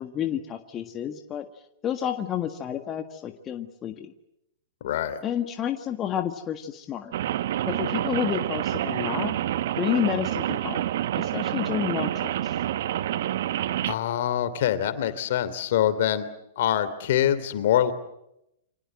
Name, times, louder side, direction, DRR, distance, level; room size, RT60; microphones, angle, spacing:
voice 1, 0.0-1.5 1.8-4.1 5.2-7.1 7.7-9.3 9.8-10.8 11.1-12.6, left 9 dB, 25° left, 7 dB, 1.8 m, -30 dB
voice 2, 4.8-5.2 13.9-16.3 16.6-17.9, left 11 dB, 60° left, 13 dB, 3.0 m, -24 dB
Rain, 7.1-13.9, right 12 dB, 60° right, 1.2 m, -28 dB
29.0 x 25.5 x 7.7 m, 0.83 s
hypercardioid pair, 110°, 0 cm